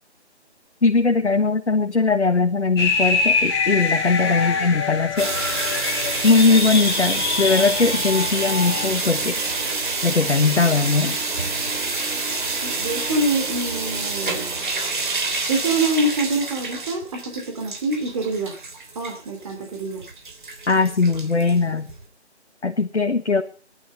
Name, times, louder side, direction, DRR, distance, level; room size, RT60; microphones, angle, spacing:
voice 1, 0.8-5.3 6.2-9.4 10.0-11.2 20.7-21.9 22.6-23.4, left 4 dB, 75° left, 4 dB, 1.7 m, -20 dB
sound 1, 2.8-8.9, left 4 dB, 20° left, 2.4 m, -24 dB
voice 2, 4.2-4.9 5.2-5.4 12.6-14.5 15.5-18.6 18.9-20.0, right 2 dB, 30° right, 2 dB, 3.1 m, -26 dB
sound 2, 5.2-22.0, right 3 dB, 45° right, 3.3 m, -27 dB
18.5 x 12.0 x 5.4 m, 0.37 s
figure-of-eight pair, 160°, 34 cm